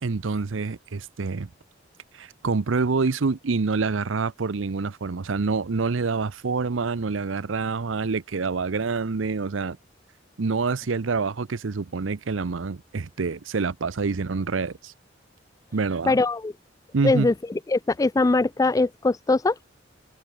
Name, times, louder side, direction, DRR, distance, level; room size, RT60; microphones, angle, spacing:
voice 1, 0.0-1.5 2.1-9.8 10.4-14.9 15.7-16.2 16.9-17.3, right 4 dB, 80° right, 0.7 m, -26 dB
voice 2, 16.1-16.5 17.0-17.3 17.7-19.6, left 3 dB, 15° left, 0.3 m, -21 dB
head